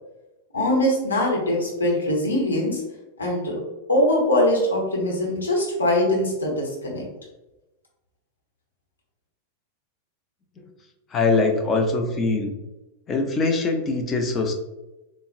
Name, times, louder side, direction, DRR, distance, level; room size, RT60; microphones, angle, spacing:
voice 1, 0.5-2.8 3.2-3.6 3.9-7.0, left 1 dB, 80° left, -3 dB, 0.9 m, -22 dB
voice 2, 11.1-12.5 13.1-14.5, left 3 dB, 25° left, 4 dB, 0.4 m, -22 dB
3.7 x 2.0 x 2.5 m, 1.0 s
figure-of-eight pair, 90°, 0 cm